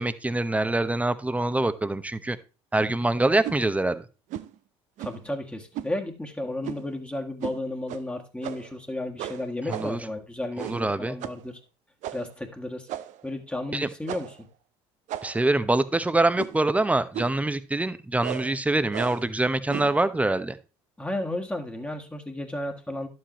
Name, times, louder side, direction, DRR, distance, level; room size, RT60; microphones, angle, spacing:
voice 1, 0.0-2.4 2.7-4.0 9.7-10.0 10.6-11.1 13.7-13.9 15.2-20.6, right 2 dB, 10° right, 13 dB, 0.9 m, -25 dB
sound 1, 3.4-3.6 4.3-4.5 5.0-5.3 5.7-5.9 6.6-6.9 7.4-7.6 7.9-8.0 8.4-8.8 9.2-10.1 10.6-10.9 11.2-11.4 12.0-12.3 12.9-13.3 14.1-14.4 15.1-15.5 16.3-16.7 17.1-17.4 18.2-18.5 18.9-19.3 19.7-20.0, right 12 dB, 55° right, 0.7 m, -36 dB
voice 2, 5.0-11.6 12.1-12.9 13.2-14.4 21.0-23.1, left 1 dB, 10° left, 2 dB, 1.6 m, -33 dB
11.5 x 7.7 x 3.0 m, 0.32 s
hypercardioid pair, 65°, 15 cm